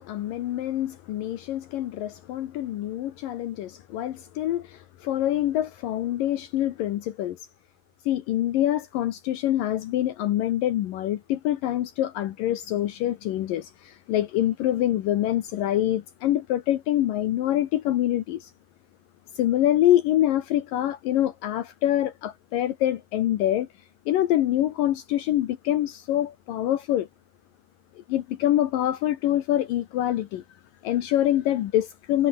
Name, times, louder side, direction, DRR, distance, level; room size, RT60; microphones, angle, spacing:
voice 1, 0.0-7.4 8.1-18.5 19.4-23.7 24.1-27.1 28.0-30.4 30.8-32.3, left 13 dB, 70° left, 2.6 m, -25 dB
omnidirectional pair, 4.5 m